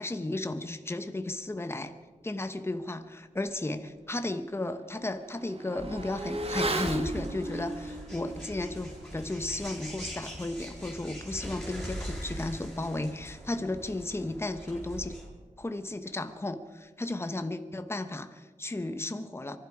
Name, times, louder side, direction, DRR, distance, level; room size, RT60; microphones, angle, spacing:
voice 1, 0.0-1.9 2.2-15.2 15.6-19.6, left 2 dB, 20° left, 9 dB, 1.0 m, -34 dB
Motorcycle / Accelerating revving vroom, 3.5-3.6 4.0-14.0 14.2-14.3, right 2 dB, 45° right, 1.8 m, -39 dB
sound 1, 5.8-15.3, equal, 5° left, 6.8 m, -42 dB
24.0 x 12.0 x 5.0 m, 1.4 s
wide cardioid pair, 75°, 13 cm